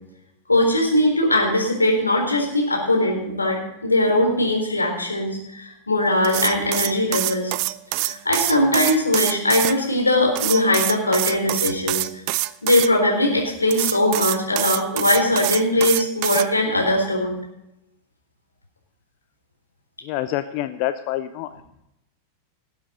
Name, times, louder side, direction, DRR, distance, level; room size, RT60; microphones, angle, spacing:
voice 1, 0.5-7.6 8.0-12.1 12.6-17.3, left 1 dB, 80° left, 1 dB, 3.9 m, -20 dB
sound 1, 6.2-9.7 10.3-12.9 13.7-16.5, right 18 dB, 45° right, 0.5 m, -25 dB
voice 2, 20.0-21.6, left 13 dB, 45° left, 11 dB, 0.6 m, -27 dB
19.0 x 8.0 x 5.0 m, 0.85 s
figure-of-eight pair, 90°, 0 cm